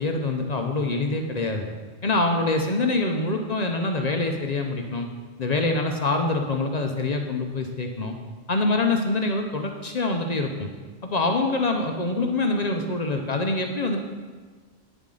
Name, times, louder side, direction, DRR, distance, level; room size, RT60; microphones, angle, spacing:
voice 1, 0.0-1.7 2.0-5.1 5.4-8.2 8.5-10.7 11.0-14.0, left 2 dB, 45° left, 3 dB, 0.7 m, -25 dB
9.1 x 7.2 x 3.8 m, 1.4 s
omnidirectional pair, 1.1 m